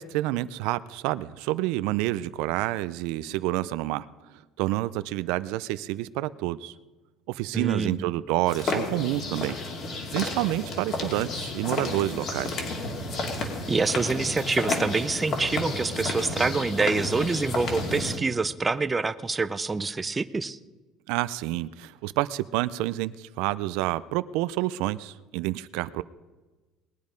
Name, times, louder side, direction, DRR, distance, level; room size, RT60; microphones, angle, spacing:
voice 1, 0.0-4.1 4.6-6.7 7.3-9.6 10.1-12.6 13.1-13.2 21.1-26.0, right 16 dB, 80° right, 16 dB, 0.4 m, -28 dB
voice 2, 7.5-8.1 13.7-20.6, right 4 dB, 15° right, 13 dB, 0.4 m, -26 dB
sound 1, 8.5-18.2, left 2 dB, 45° left, 2.4 m, -31 dB
19.5 x 9.5 x 5.2 m, 1.2 s
cardioid pair, 155°, 0 cm